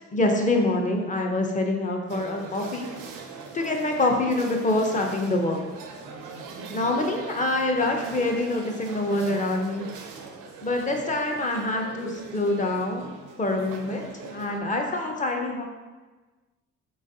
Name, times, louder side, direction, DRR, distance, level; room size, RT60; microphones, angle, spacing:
voice 1, 0.1-2.9 3.5-5.6 6.7-9.9 10.6-15.7, left 2 dB, 25° left, 2 dB, 0.5 m, -26 dB
sound 1, 2.1-14.6, right 4 dB, 90° right, 0.6 m, -41 dB
3.9 x 3.3 x 2.6 m, 1.3 s
cardioid pair, 100°, 31 cm